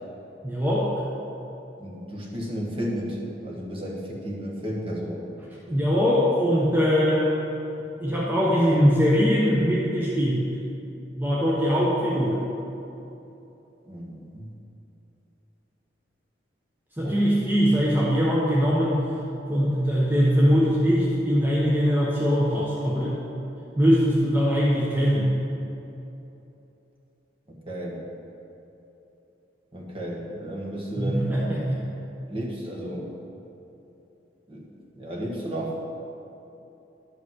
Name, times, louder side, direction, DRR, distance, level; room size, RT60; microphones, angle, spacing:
voice 1, 0.4-0.9 5.7-7.3 8.0-10.5 11.2-12.4 17.0-19.1 19.5-23.2 23.8-25.3 31.0-31.8, equal, 10° right, -6 dB, 0.9 m, -21 dB
voice 2, 1.8-5.3 13.9-14.5 17.0-17.2 27.5-28.0 29.7-31.7 32.3-33.1 34.5-34.7 34.9-35.8, equal, 30° right, -3 dB, 1.4 m, -33 dB
11.0 x 5.1 x 6.2 m, 2.9 s
head